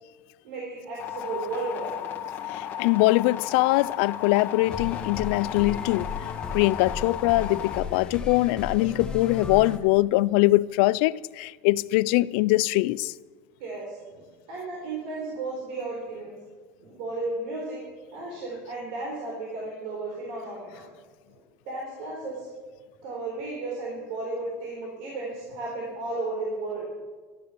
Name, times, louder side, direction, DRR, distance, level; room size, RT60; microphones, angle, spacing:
voice 1, 0.4-1.9 13.6-16.4 16.8-17.8 18.1-20.8 21.3-22.5 23.0-26.8, right 2 dB, 70° right, 4.1 m, -34 dB
sound 1, 1.0-7.8, left 10 dB, 35° left, 1.9 m, -35 dB
voice 2, 2.5-6.1 6.5-13.1, left 19 dB, 75° left, 0.4 m, -22 dB
sound 2, 4.6-9.8, left 4 dB, 15° left, 1.3 m, -35 dB
13.0 x 12.0 x 6.9 m
cardioid pair, 160°, 6 cm